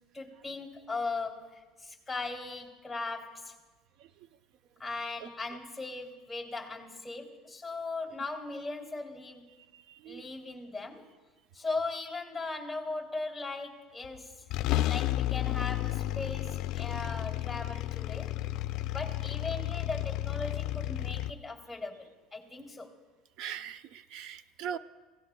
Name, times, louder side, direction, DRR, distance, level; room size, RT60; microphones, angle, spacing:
voice 1, 0.1-3.5 4.8-9.5 10.0-11.1 11.5-14.4 14.9-18.4 18.9-22.9, left 3 dB, 5° left, 2 dB, 2.6 m, -38 dB
voice 2, 9.7-10.2 23.4-24.8, right 9 dB, 65° right, 13 dB, 0.5 m, -40 dB
sound 1, 14.0-14.2 14.5-21.3, left 15 dB, 65° left, 0.3 m, -32 dB
28.5 x 17.0 x 2.2 m, 1.3 s
cardioid pair, 125°, 0 cm